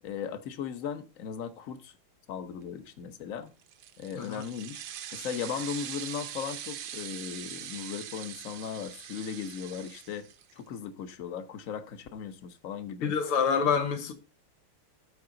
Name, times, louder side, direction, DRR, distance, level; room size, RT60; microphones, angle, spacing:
voice 1, 0.0-1.9 2.3-3.5 4.0-4.8 5.1-10.3 10.5-13.2, left 7 dB, 50° left, 1.1 m, -37 dB
sound 1, 3.6-10.6, right 10 dB, 70° right, 1.6 m, -42 dB
voice 2, 13.0-14.1, left 6 dB, 90° left, 2.0 m, -27 dB
13.5 x 4.8 x 3.9 m
omnidirectional pair, 2.3 m